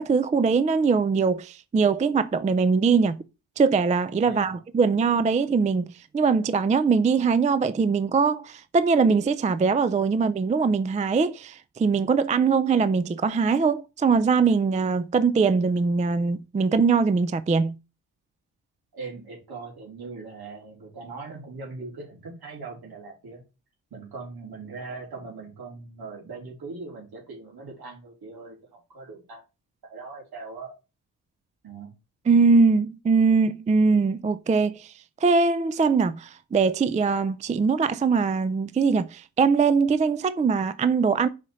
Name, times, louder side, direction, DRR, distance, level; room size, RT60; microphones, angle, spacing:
voice 1, 0.0-3.2 3.6-5.9 6.1-17.7 32.3-34.9 35.2-41.3, right 5 dB, 20° right, 0.3 m, -22 dB
voice 2, 4.2-4.6 18.9-23.4 23.9-28.6 28.9-29.4 29.8-30.7 31.6-31.9, right 3 dB, 65° right, 3.3 m, -40 dB
5.3 x 4.9 x 4.2 m
cardioid pair, 110°, 40 cm